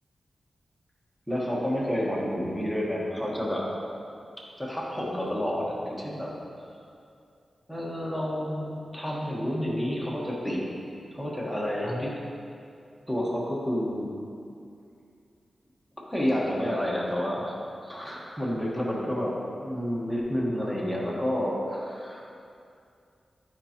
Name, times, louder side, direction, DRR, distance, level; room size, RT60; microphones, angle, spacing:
voice 1, 1.3-3.6 4.6-6.3 7.7-10.6 11.1-12.1 13.1-14.1 16.1-17.6 17.8-22.2, equal, ahead, -4 dB, 1.3 m, -29 dB
9.9 x 4.7 x 2.9 m, 2.5 s
wide cardioid pair, 95°, 0 cm